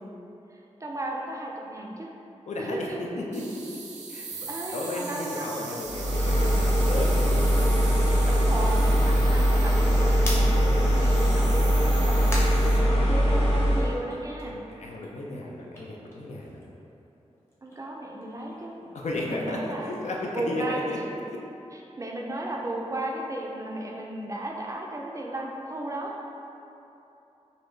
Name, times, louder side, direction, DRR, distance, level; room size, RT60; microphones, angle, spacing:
voice 1, 0.5-2.1 2.6-3.0 4.5-5.6 8.3-14.6 17.6-18.8 19.1-20.0 20.3-20.9 21.7-26.2, right 1 dB, 25° right, -1 dB, 0.4 m, -35 dB
voice 2, 2.5-3.6 4.1-4.5 4.7-7.5 14.4-16.6 18.9-21.0 21.3-21.4, left 2 dB, 70° left, -2 dB, 0.5 m, -34 dB
sound 1, 3.3-12.8, right 4 dB, 90° right, 0.5 m, -40 dB
sound 2, 5.8-13.9, equal, 40° left, 1.3 m, -22 dB
sound 3, 10.2-13.6 14.0-16.9 17.2-21.3, left 1 dB, 20° left, 0.8 m, -42 dB
4.1 x 2.5 x 3.1 m, 2.9 s
wide cardioid pair, 100°, 12 cm